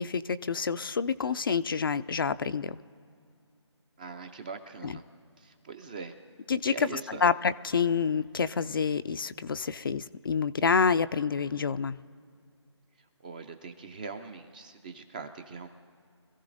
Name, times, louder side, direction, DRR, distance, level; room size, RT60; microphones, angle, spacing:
voice 1, 0.0-2.8 4.8-4.9 6.5-12.0, left 5 dB, 50° left, 12 dB, 0.4 m, -28 dB
voice 2, 4.0-5.0 5.4-6.1 6.7-7.3 13.2-15.7, right 5 dB, 15° right, 8 dB, 0.4 m, -42 dB
25.5 x 15.0 x 2.6 m, 2.3 s
figure-of-eight pair, 150°, 15 cm